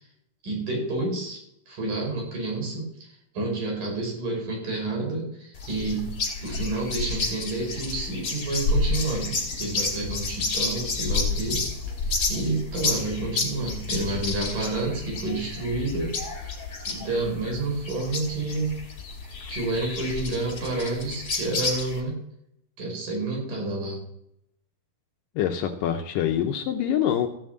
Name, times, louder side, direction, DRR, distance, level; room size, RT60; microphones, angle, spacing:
voice 1, 0.4-1.4 1.7-6.1 6.4-11.6 12.0-16.6 16.8-18.7 19.5-22.2 22.8-24.0, right 2 dB, 70° right, -1 dB, 6.1 m, -29 dB
sound 1, 5.6-22.0, left 3 dB, 40° left, 3.2 m, -30 dB
voice 2, 25.4-27.3, left 10 dB, 80° left, 5 dB, 2.4 m, -25 dB
15.5 x 6.1 x 7.7 m, 0.76 s
omnidirectional pair, 3.9 m